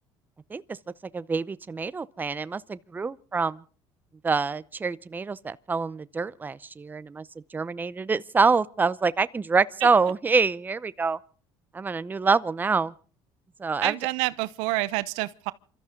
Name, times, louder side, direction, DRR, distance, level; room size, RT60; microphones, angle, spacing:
voice 1, 1.1-3.6 4.2-7.2 7.5-11.2 11.7-12.9 13.6-13.9, right 4 dB, 20° right, 0.7 m, -26 dB
voice 2, 13.8-15.5, right 21 dB, 90° right, 0.9 m, -28 dB
28.0 x 13.5 x 3.8 m
cardioid pair, 110°, 10 cm